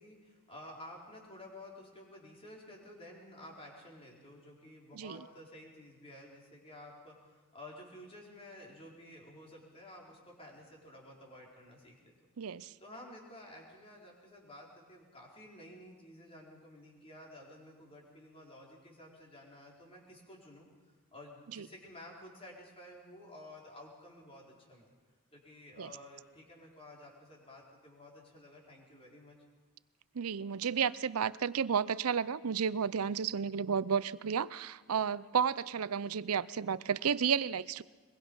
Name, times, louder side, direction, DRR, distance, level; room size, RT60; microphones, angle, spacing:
voice 1, 0.0-12.1 12.8-20.7 21.1-24.9 25.3-29.4, left 1 dB, 25° left, -2 dB, 4.4 m, -52 dB
voice 2, 12.4-12.7 21.6-21.7 25.8-25.9 30.1-37.8, right 7 dB, 80° right, 18 dB, 0.6 m, -32 dB
22.5 x 22.5 x 5.5 m, 1.3 s
head